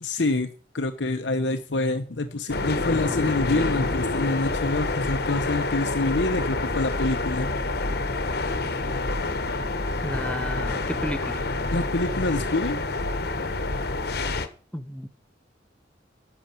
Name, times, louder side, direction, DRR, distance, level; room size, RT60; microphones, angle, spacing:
voice 1, 0.0-7.5 11.7-12.8, left 2 dB, 80° left, 1.0 m, -26 dB
sound 1, 2.5-14.5, left 2 dB, 60° left, 1.3 m, -27 dB
voice 2, 10.0-11.5 14.7-15.1, equal, 5° left, 0.8 m, -33 dB
11.5 x 6.9 x 8.8 m
head